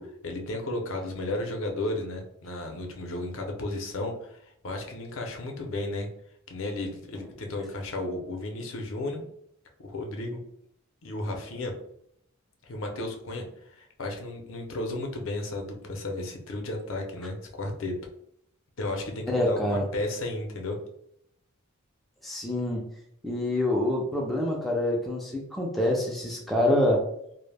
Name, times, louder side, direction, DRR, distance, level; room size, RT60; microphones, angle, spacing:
voice 1, 0.0-6.1 6.5-9.2 9.8-10.4 11.0-11.7 12.6-13.4 13.7-18.0 18.8-20.8, left 2 dB, 65° left, 2 dB, 0.5 m, -33 dB
voice 2, 19.3-19.8 22.2-22.8 23.2-27.1, left 1 dB, ahead, -2 dB, 0.3 m, -26 dB
2.0 x 2.0 x 3.2 m, 0.74 s
head